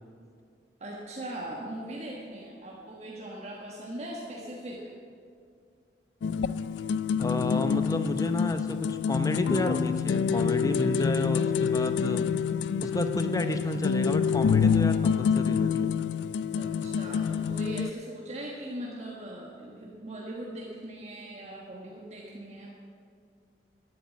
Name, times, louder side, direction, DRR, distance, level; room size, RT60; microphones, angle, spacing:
voice 1, 0.8-4.9 16.5-22.7, right 1 dB, 35° right, -3 dB, 1.4 m, -40 dB
sound 1, 6.2-17.9, left 7 dB, 80° left, 0.3 m, -27 dB
voice 2, 7.2-12.4 12.8-15.9, left 1 dB, 20° left, 8 dB, 0.7 m, -31 dB
12.5 x 8.5 x 8.4 m, 2.2 s
head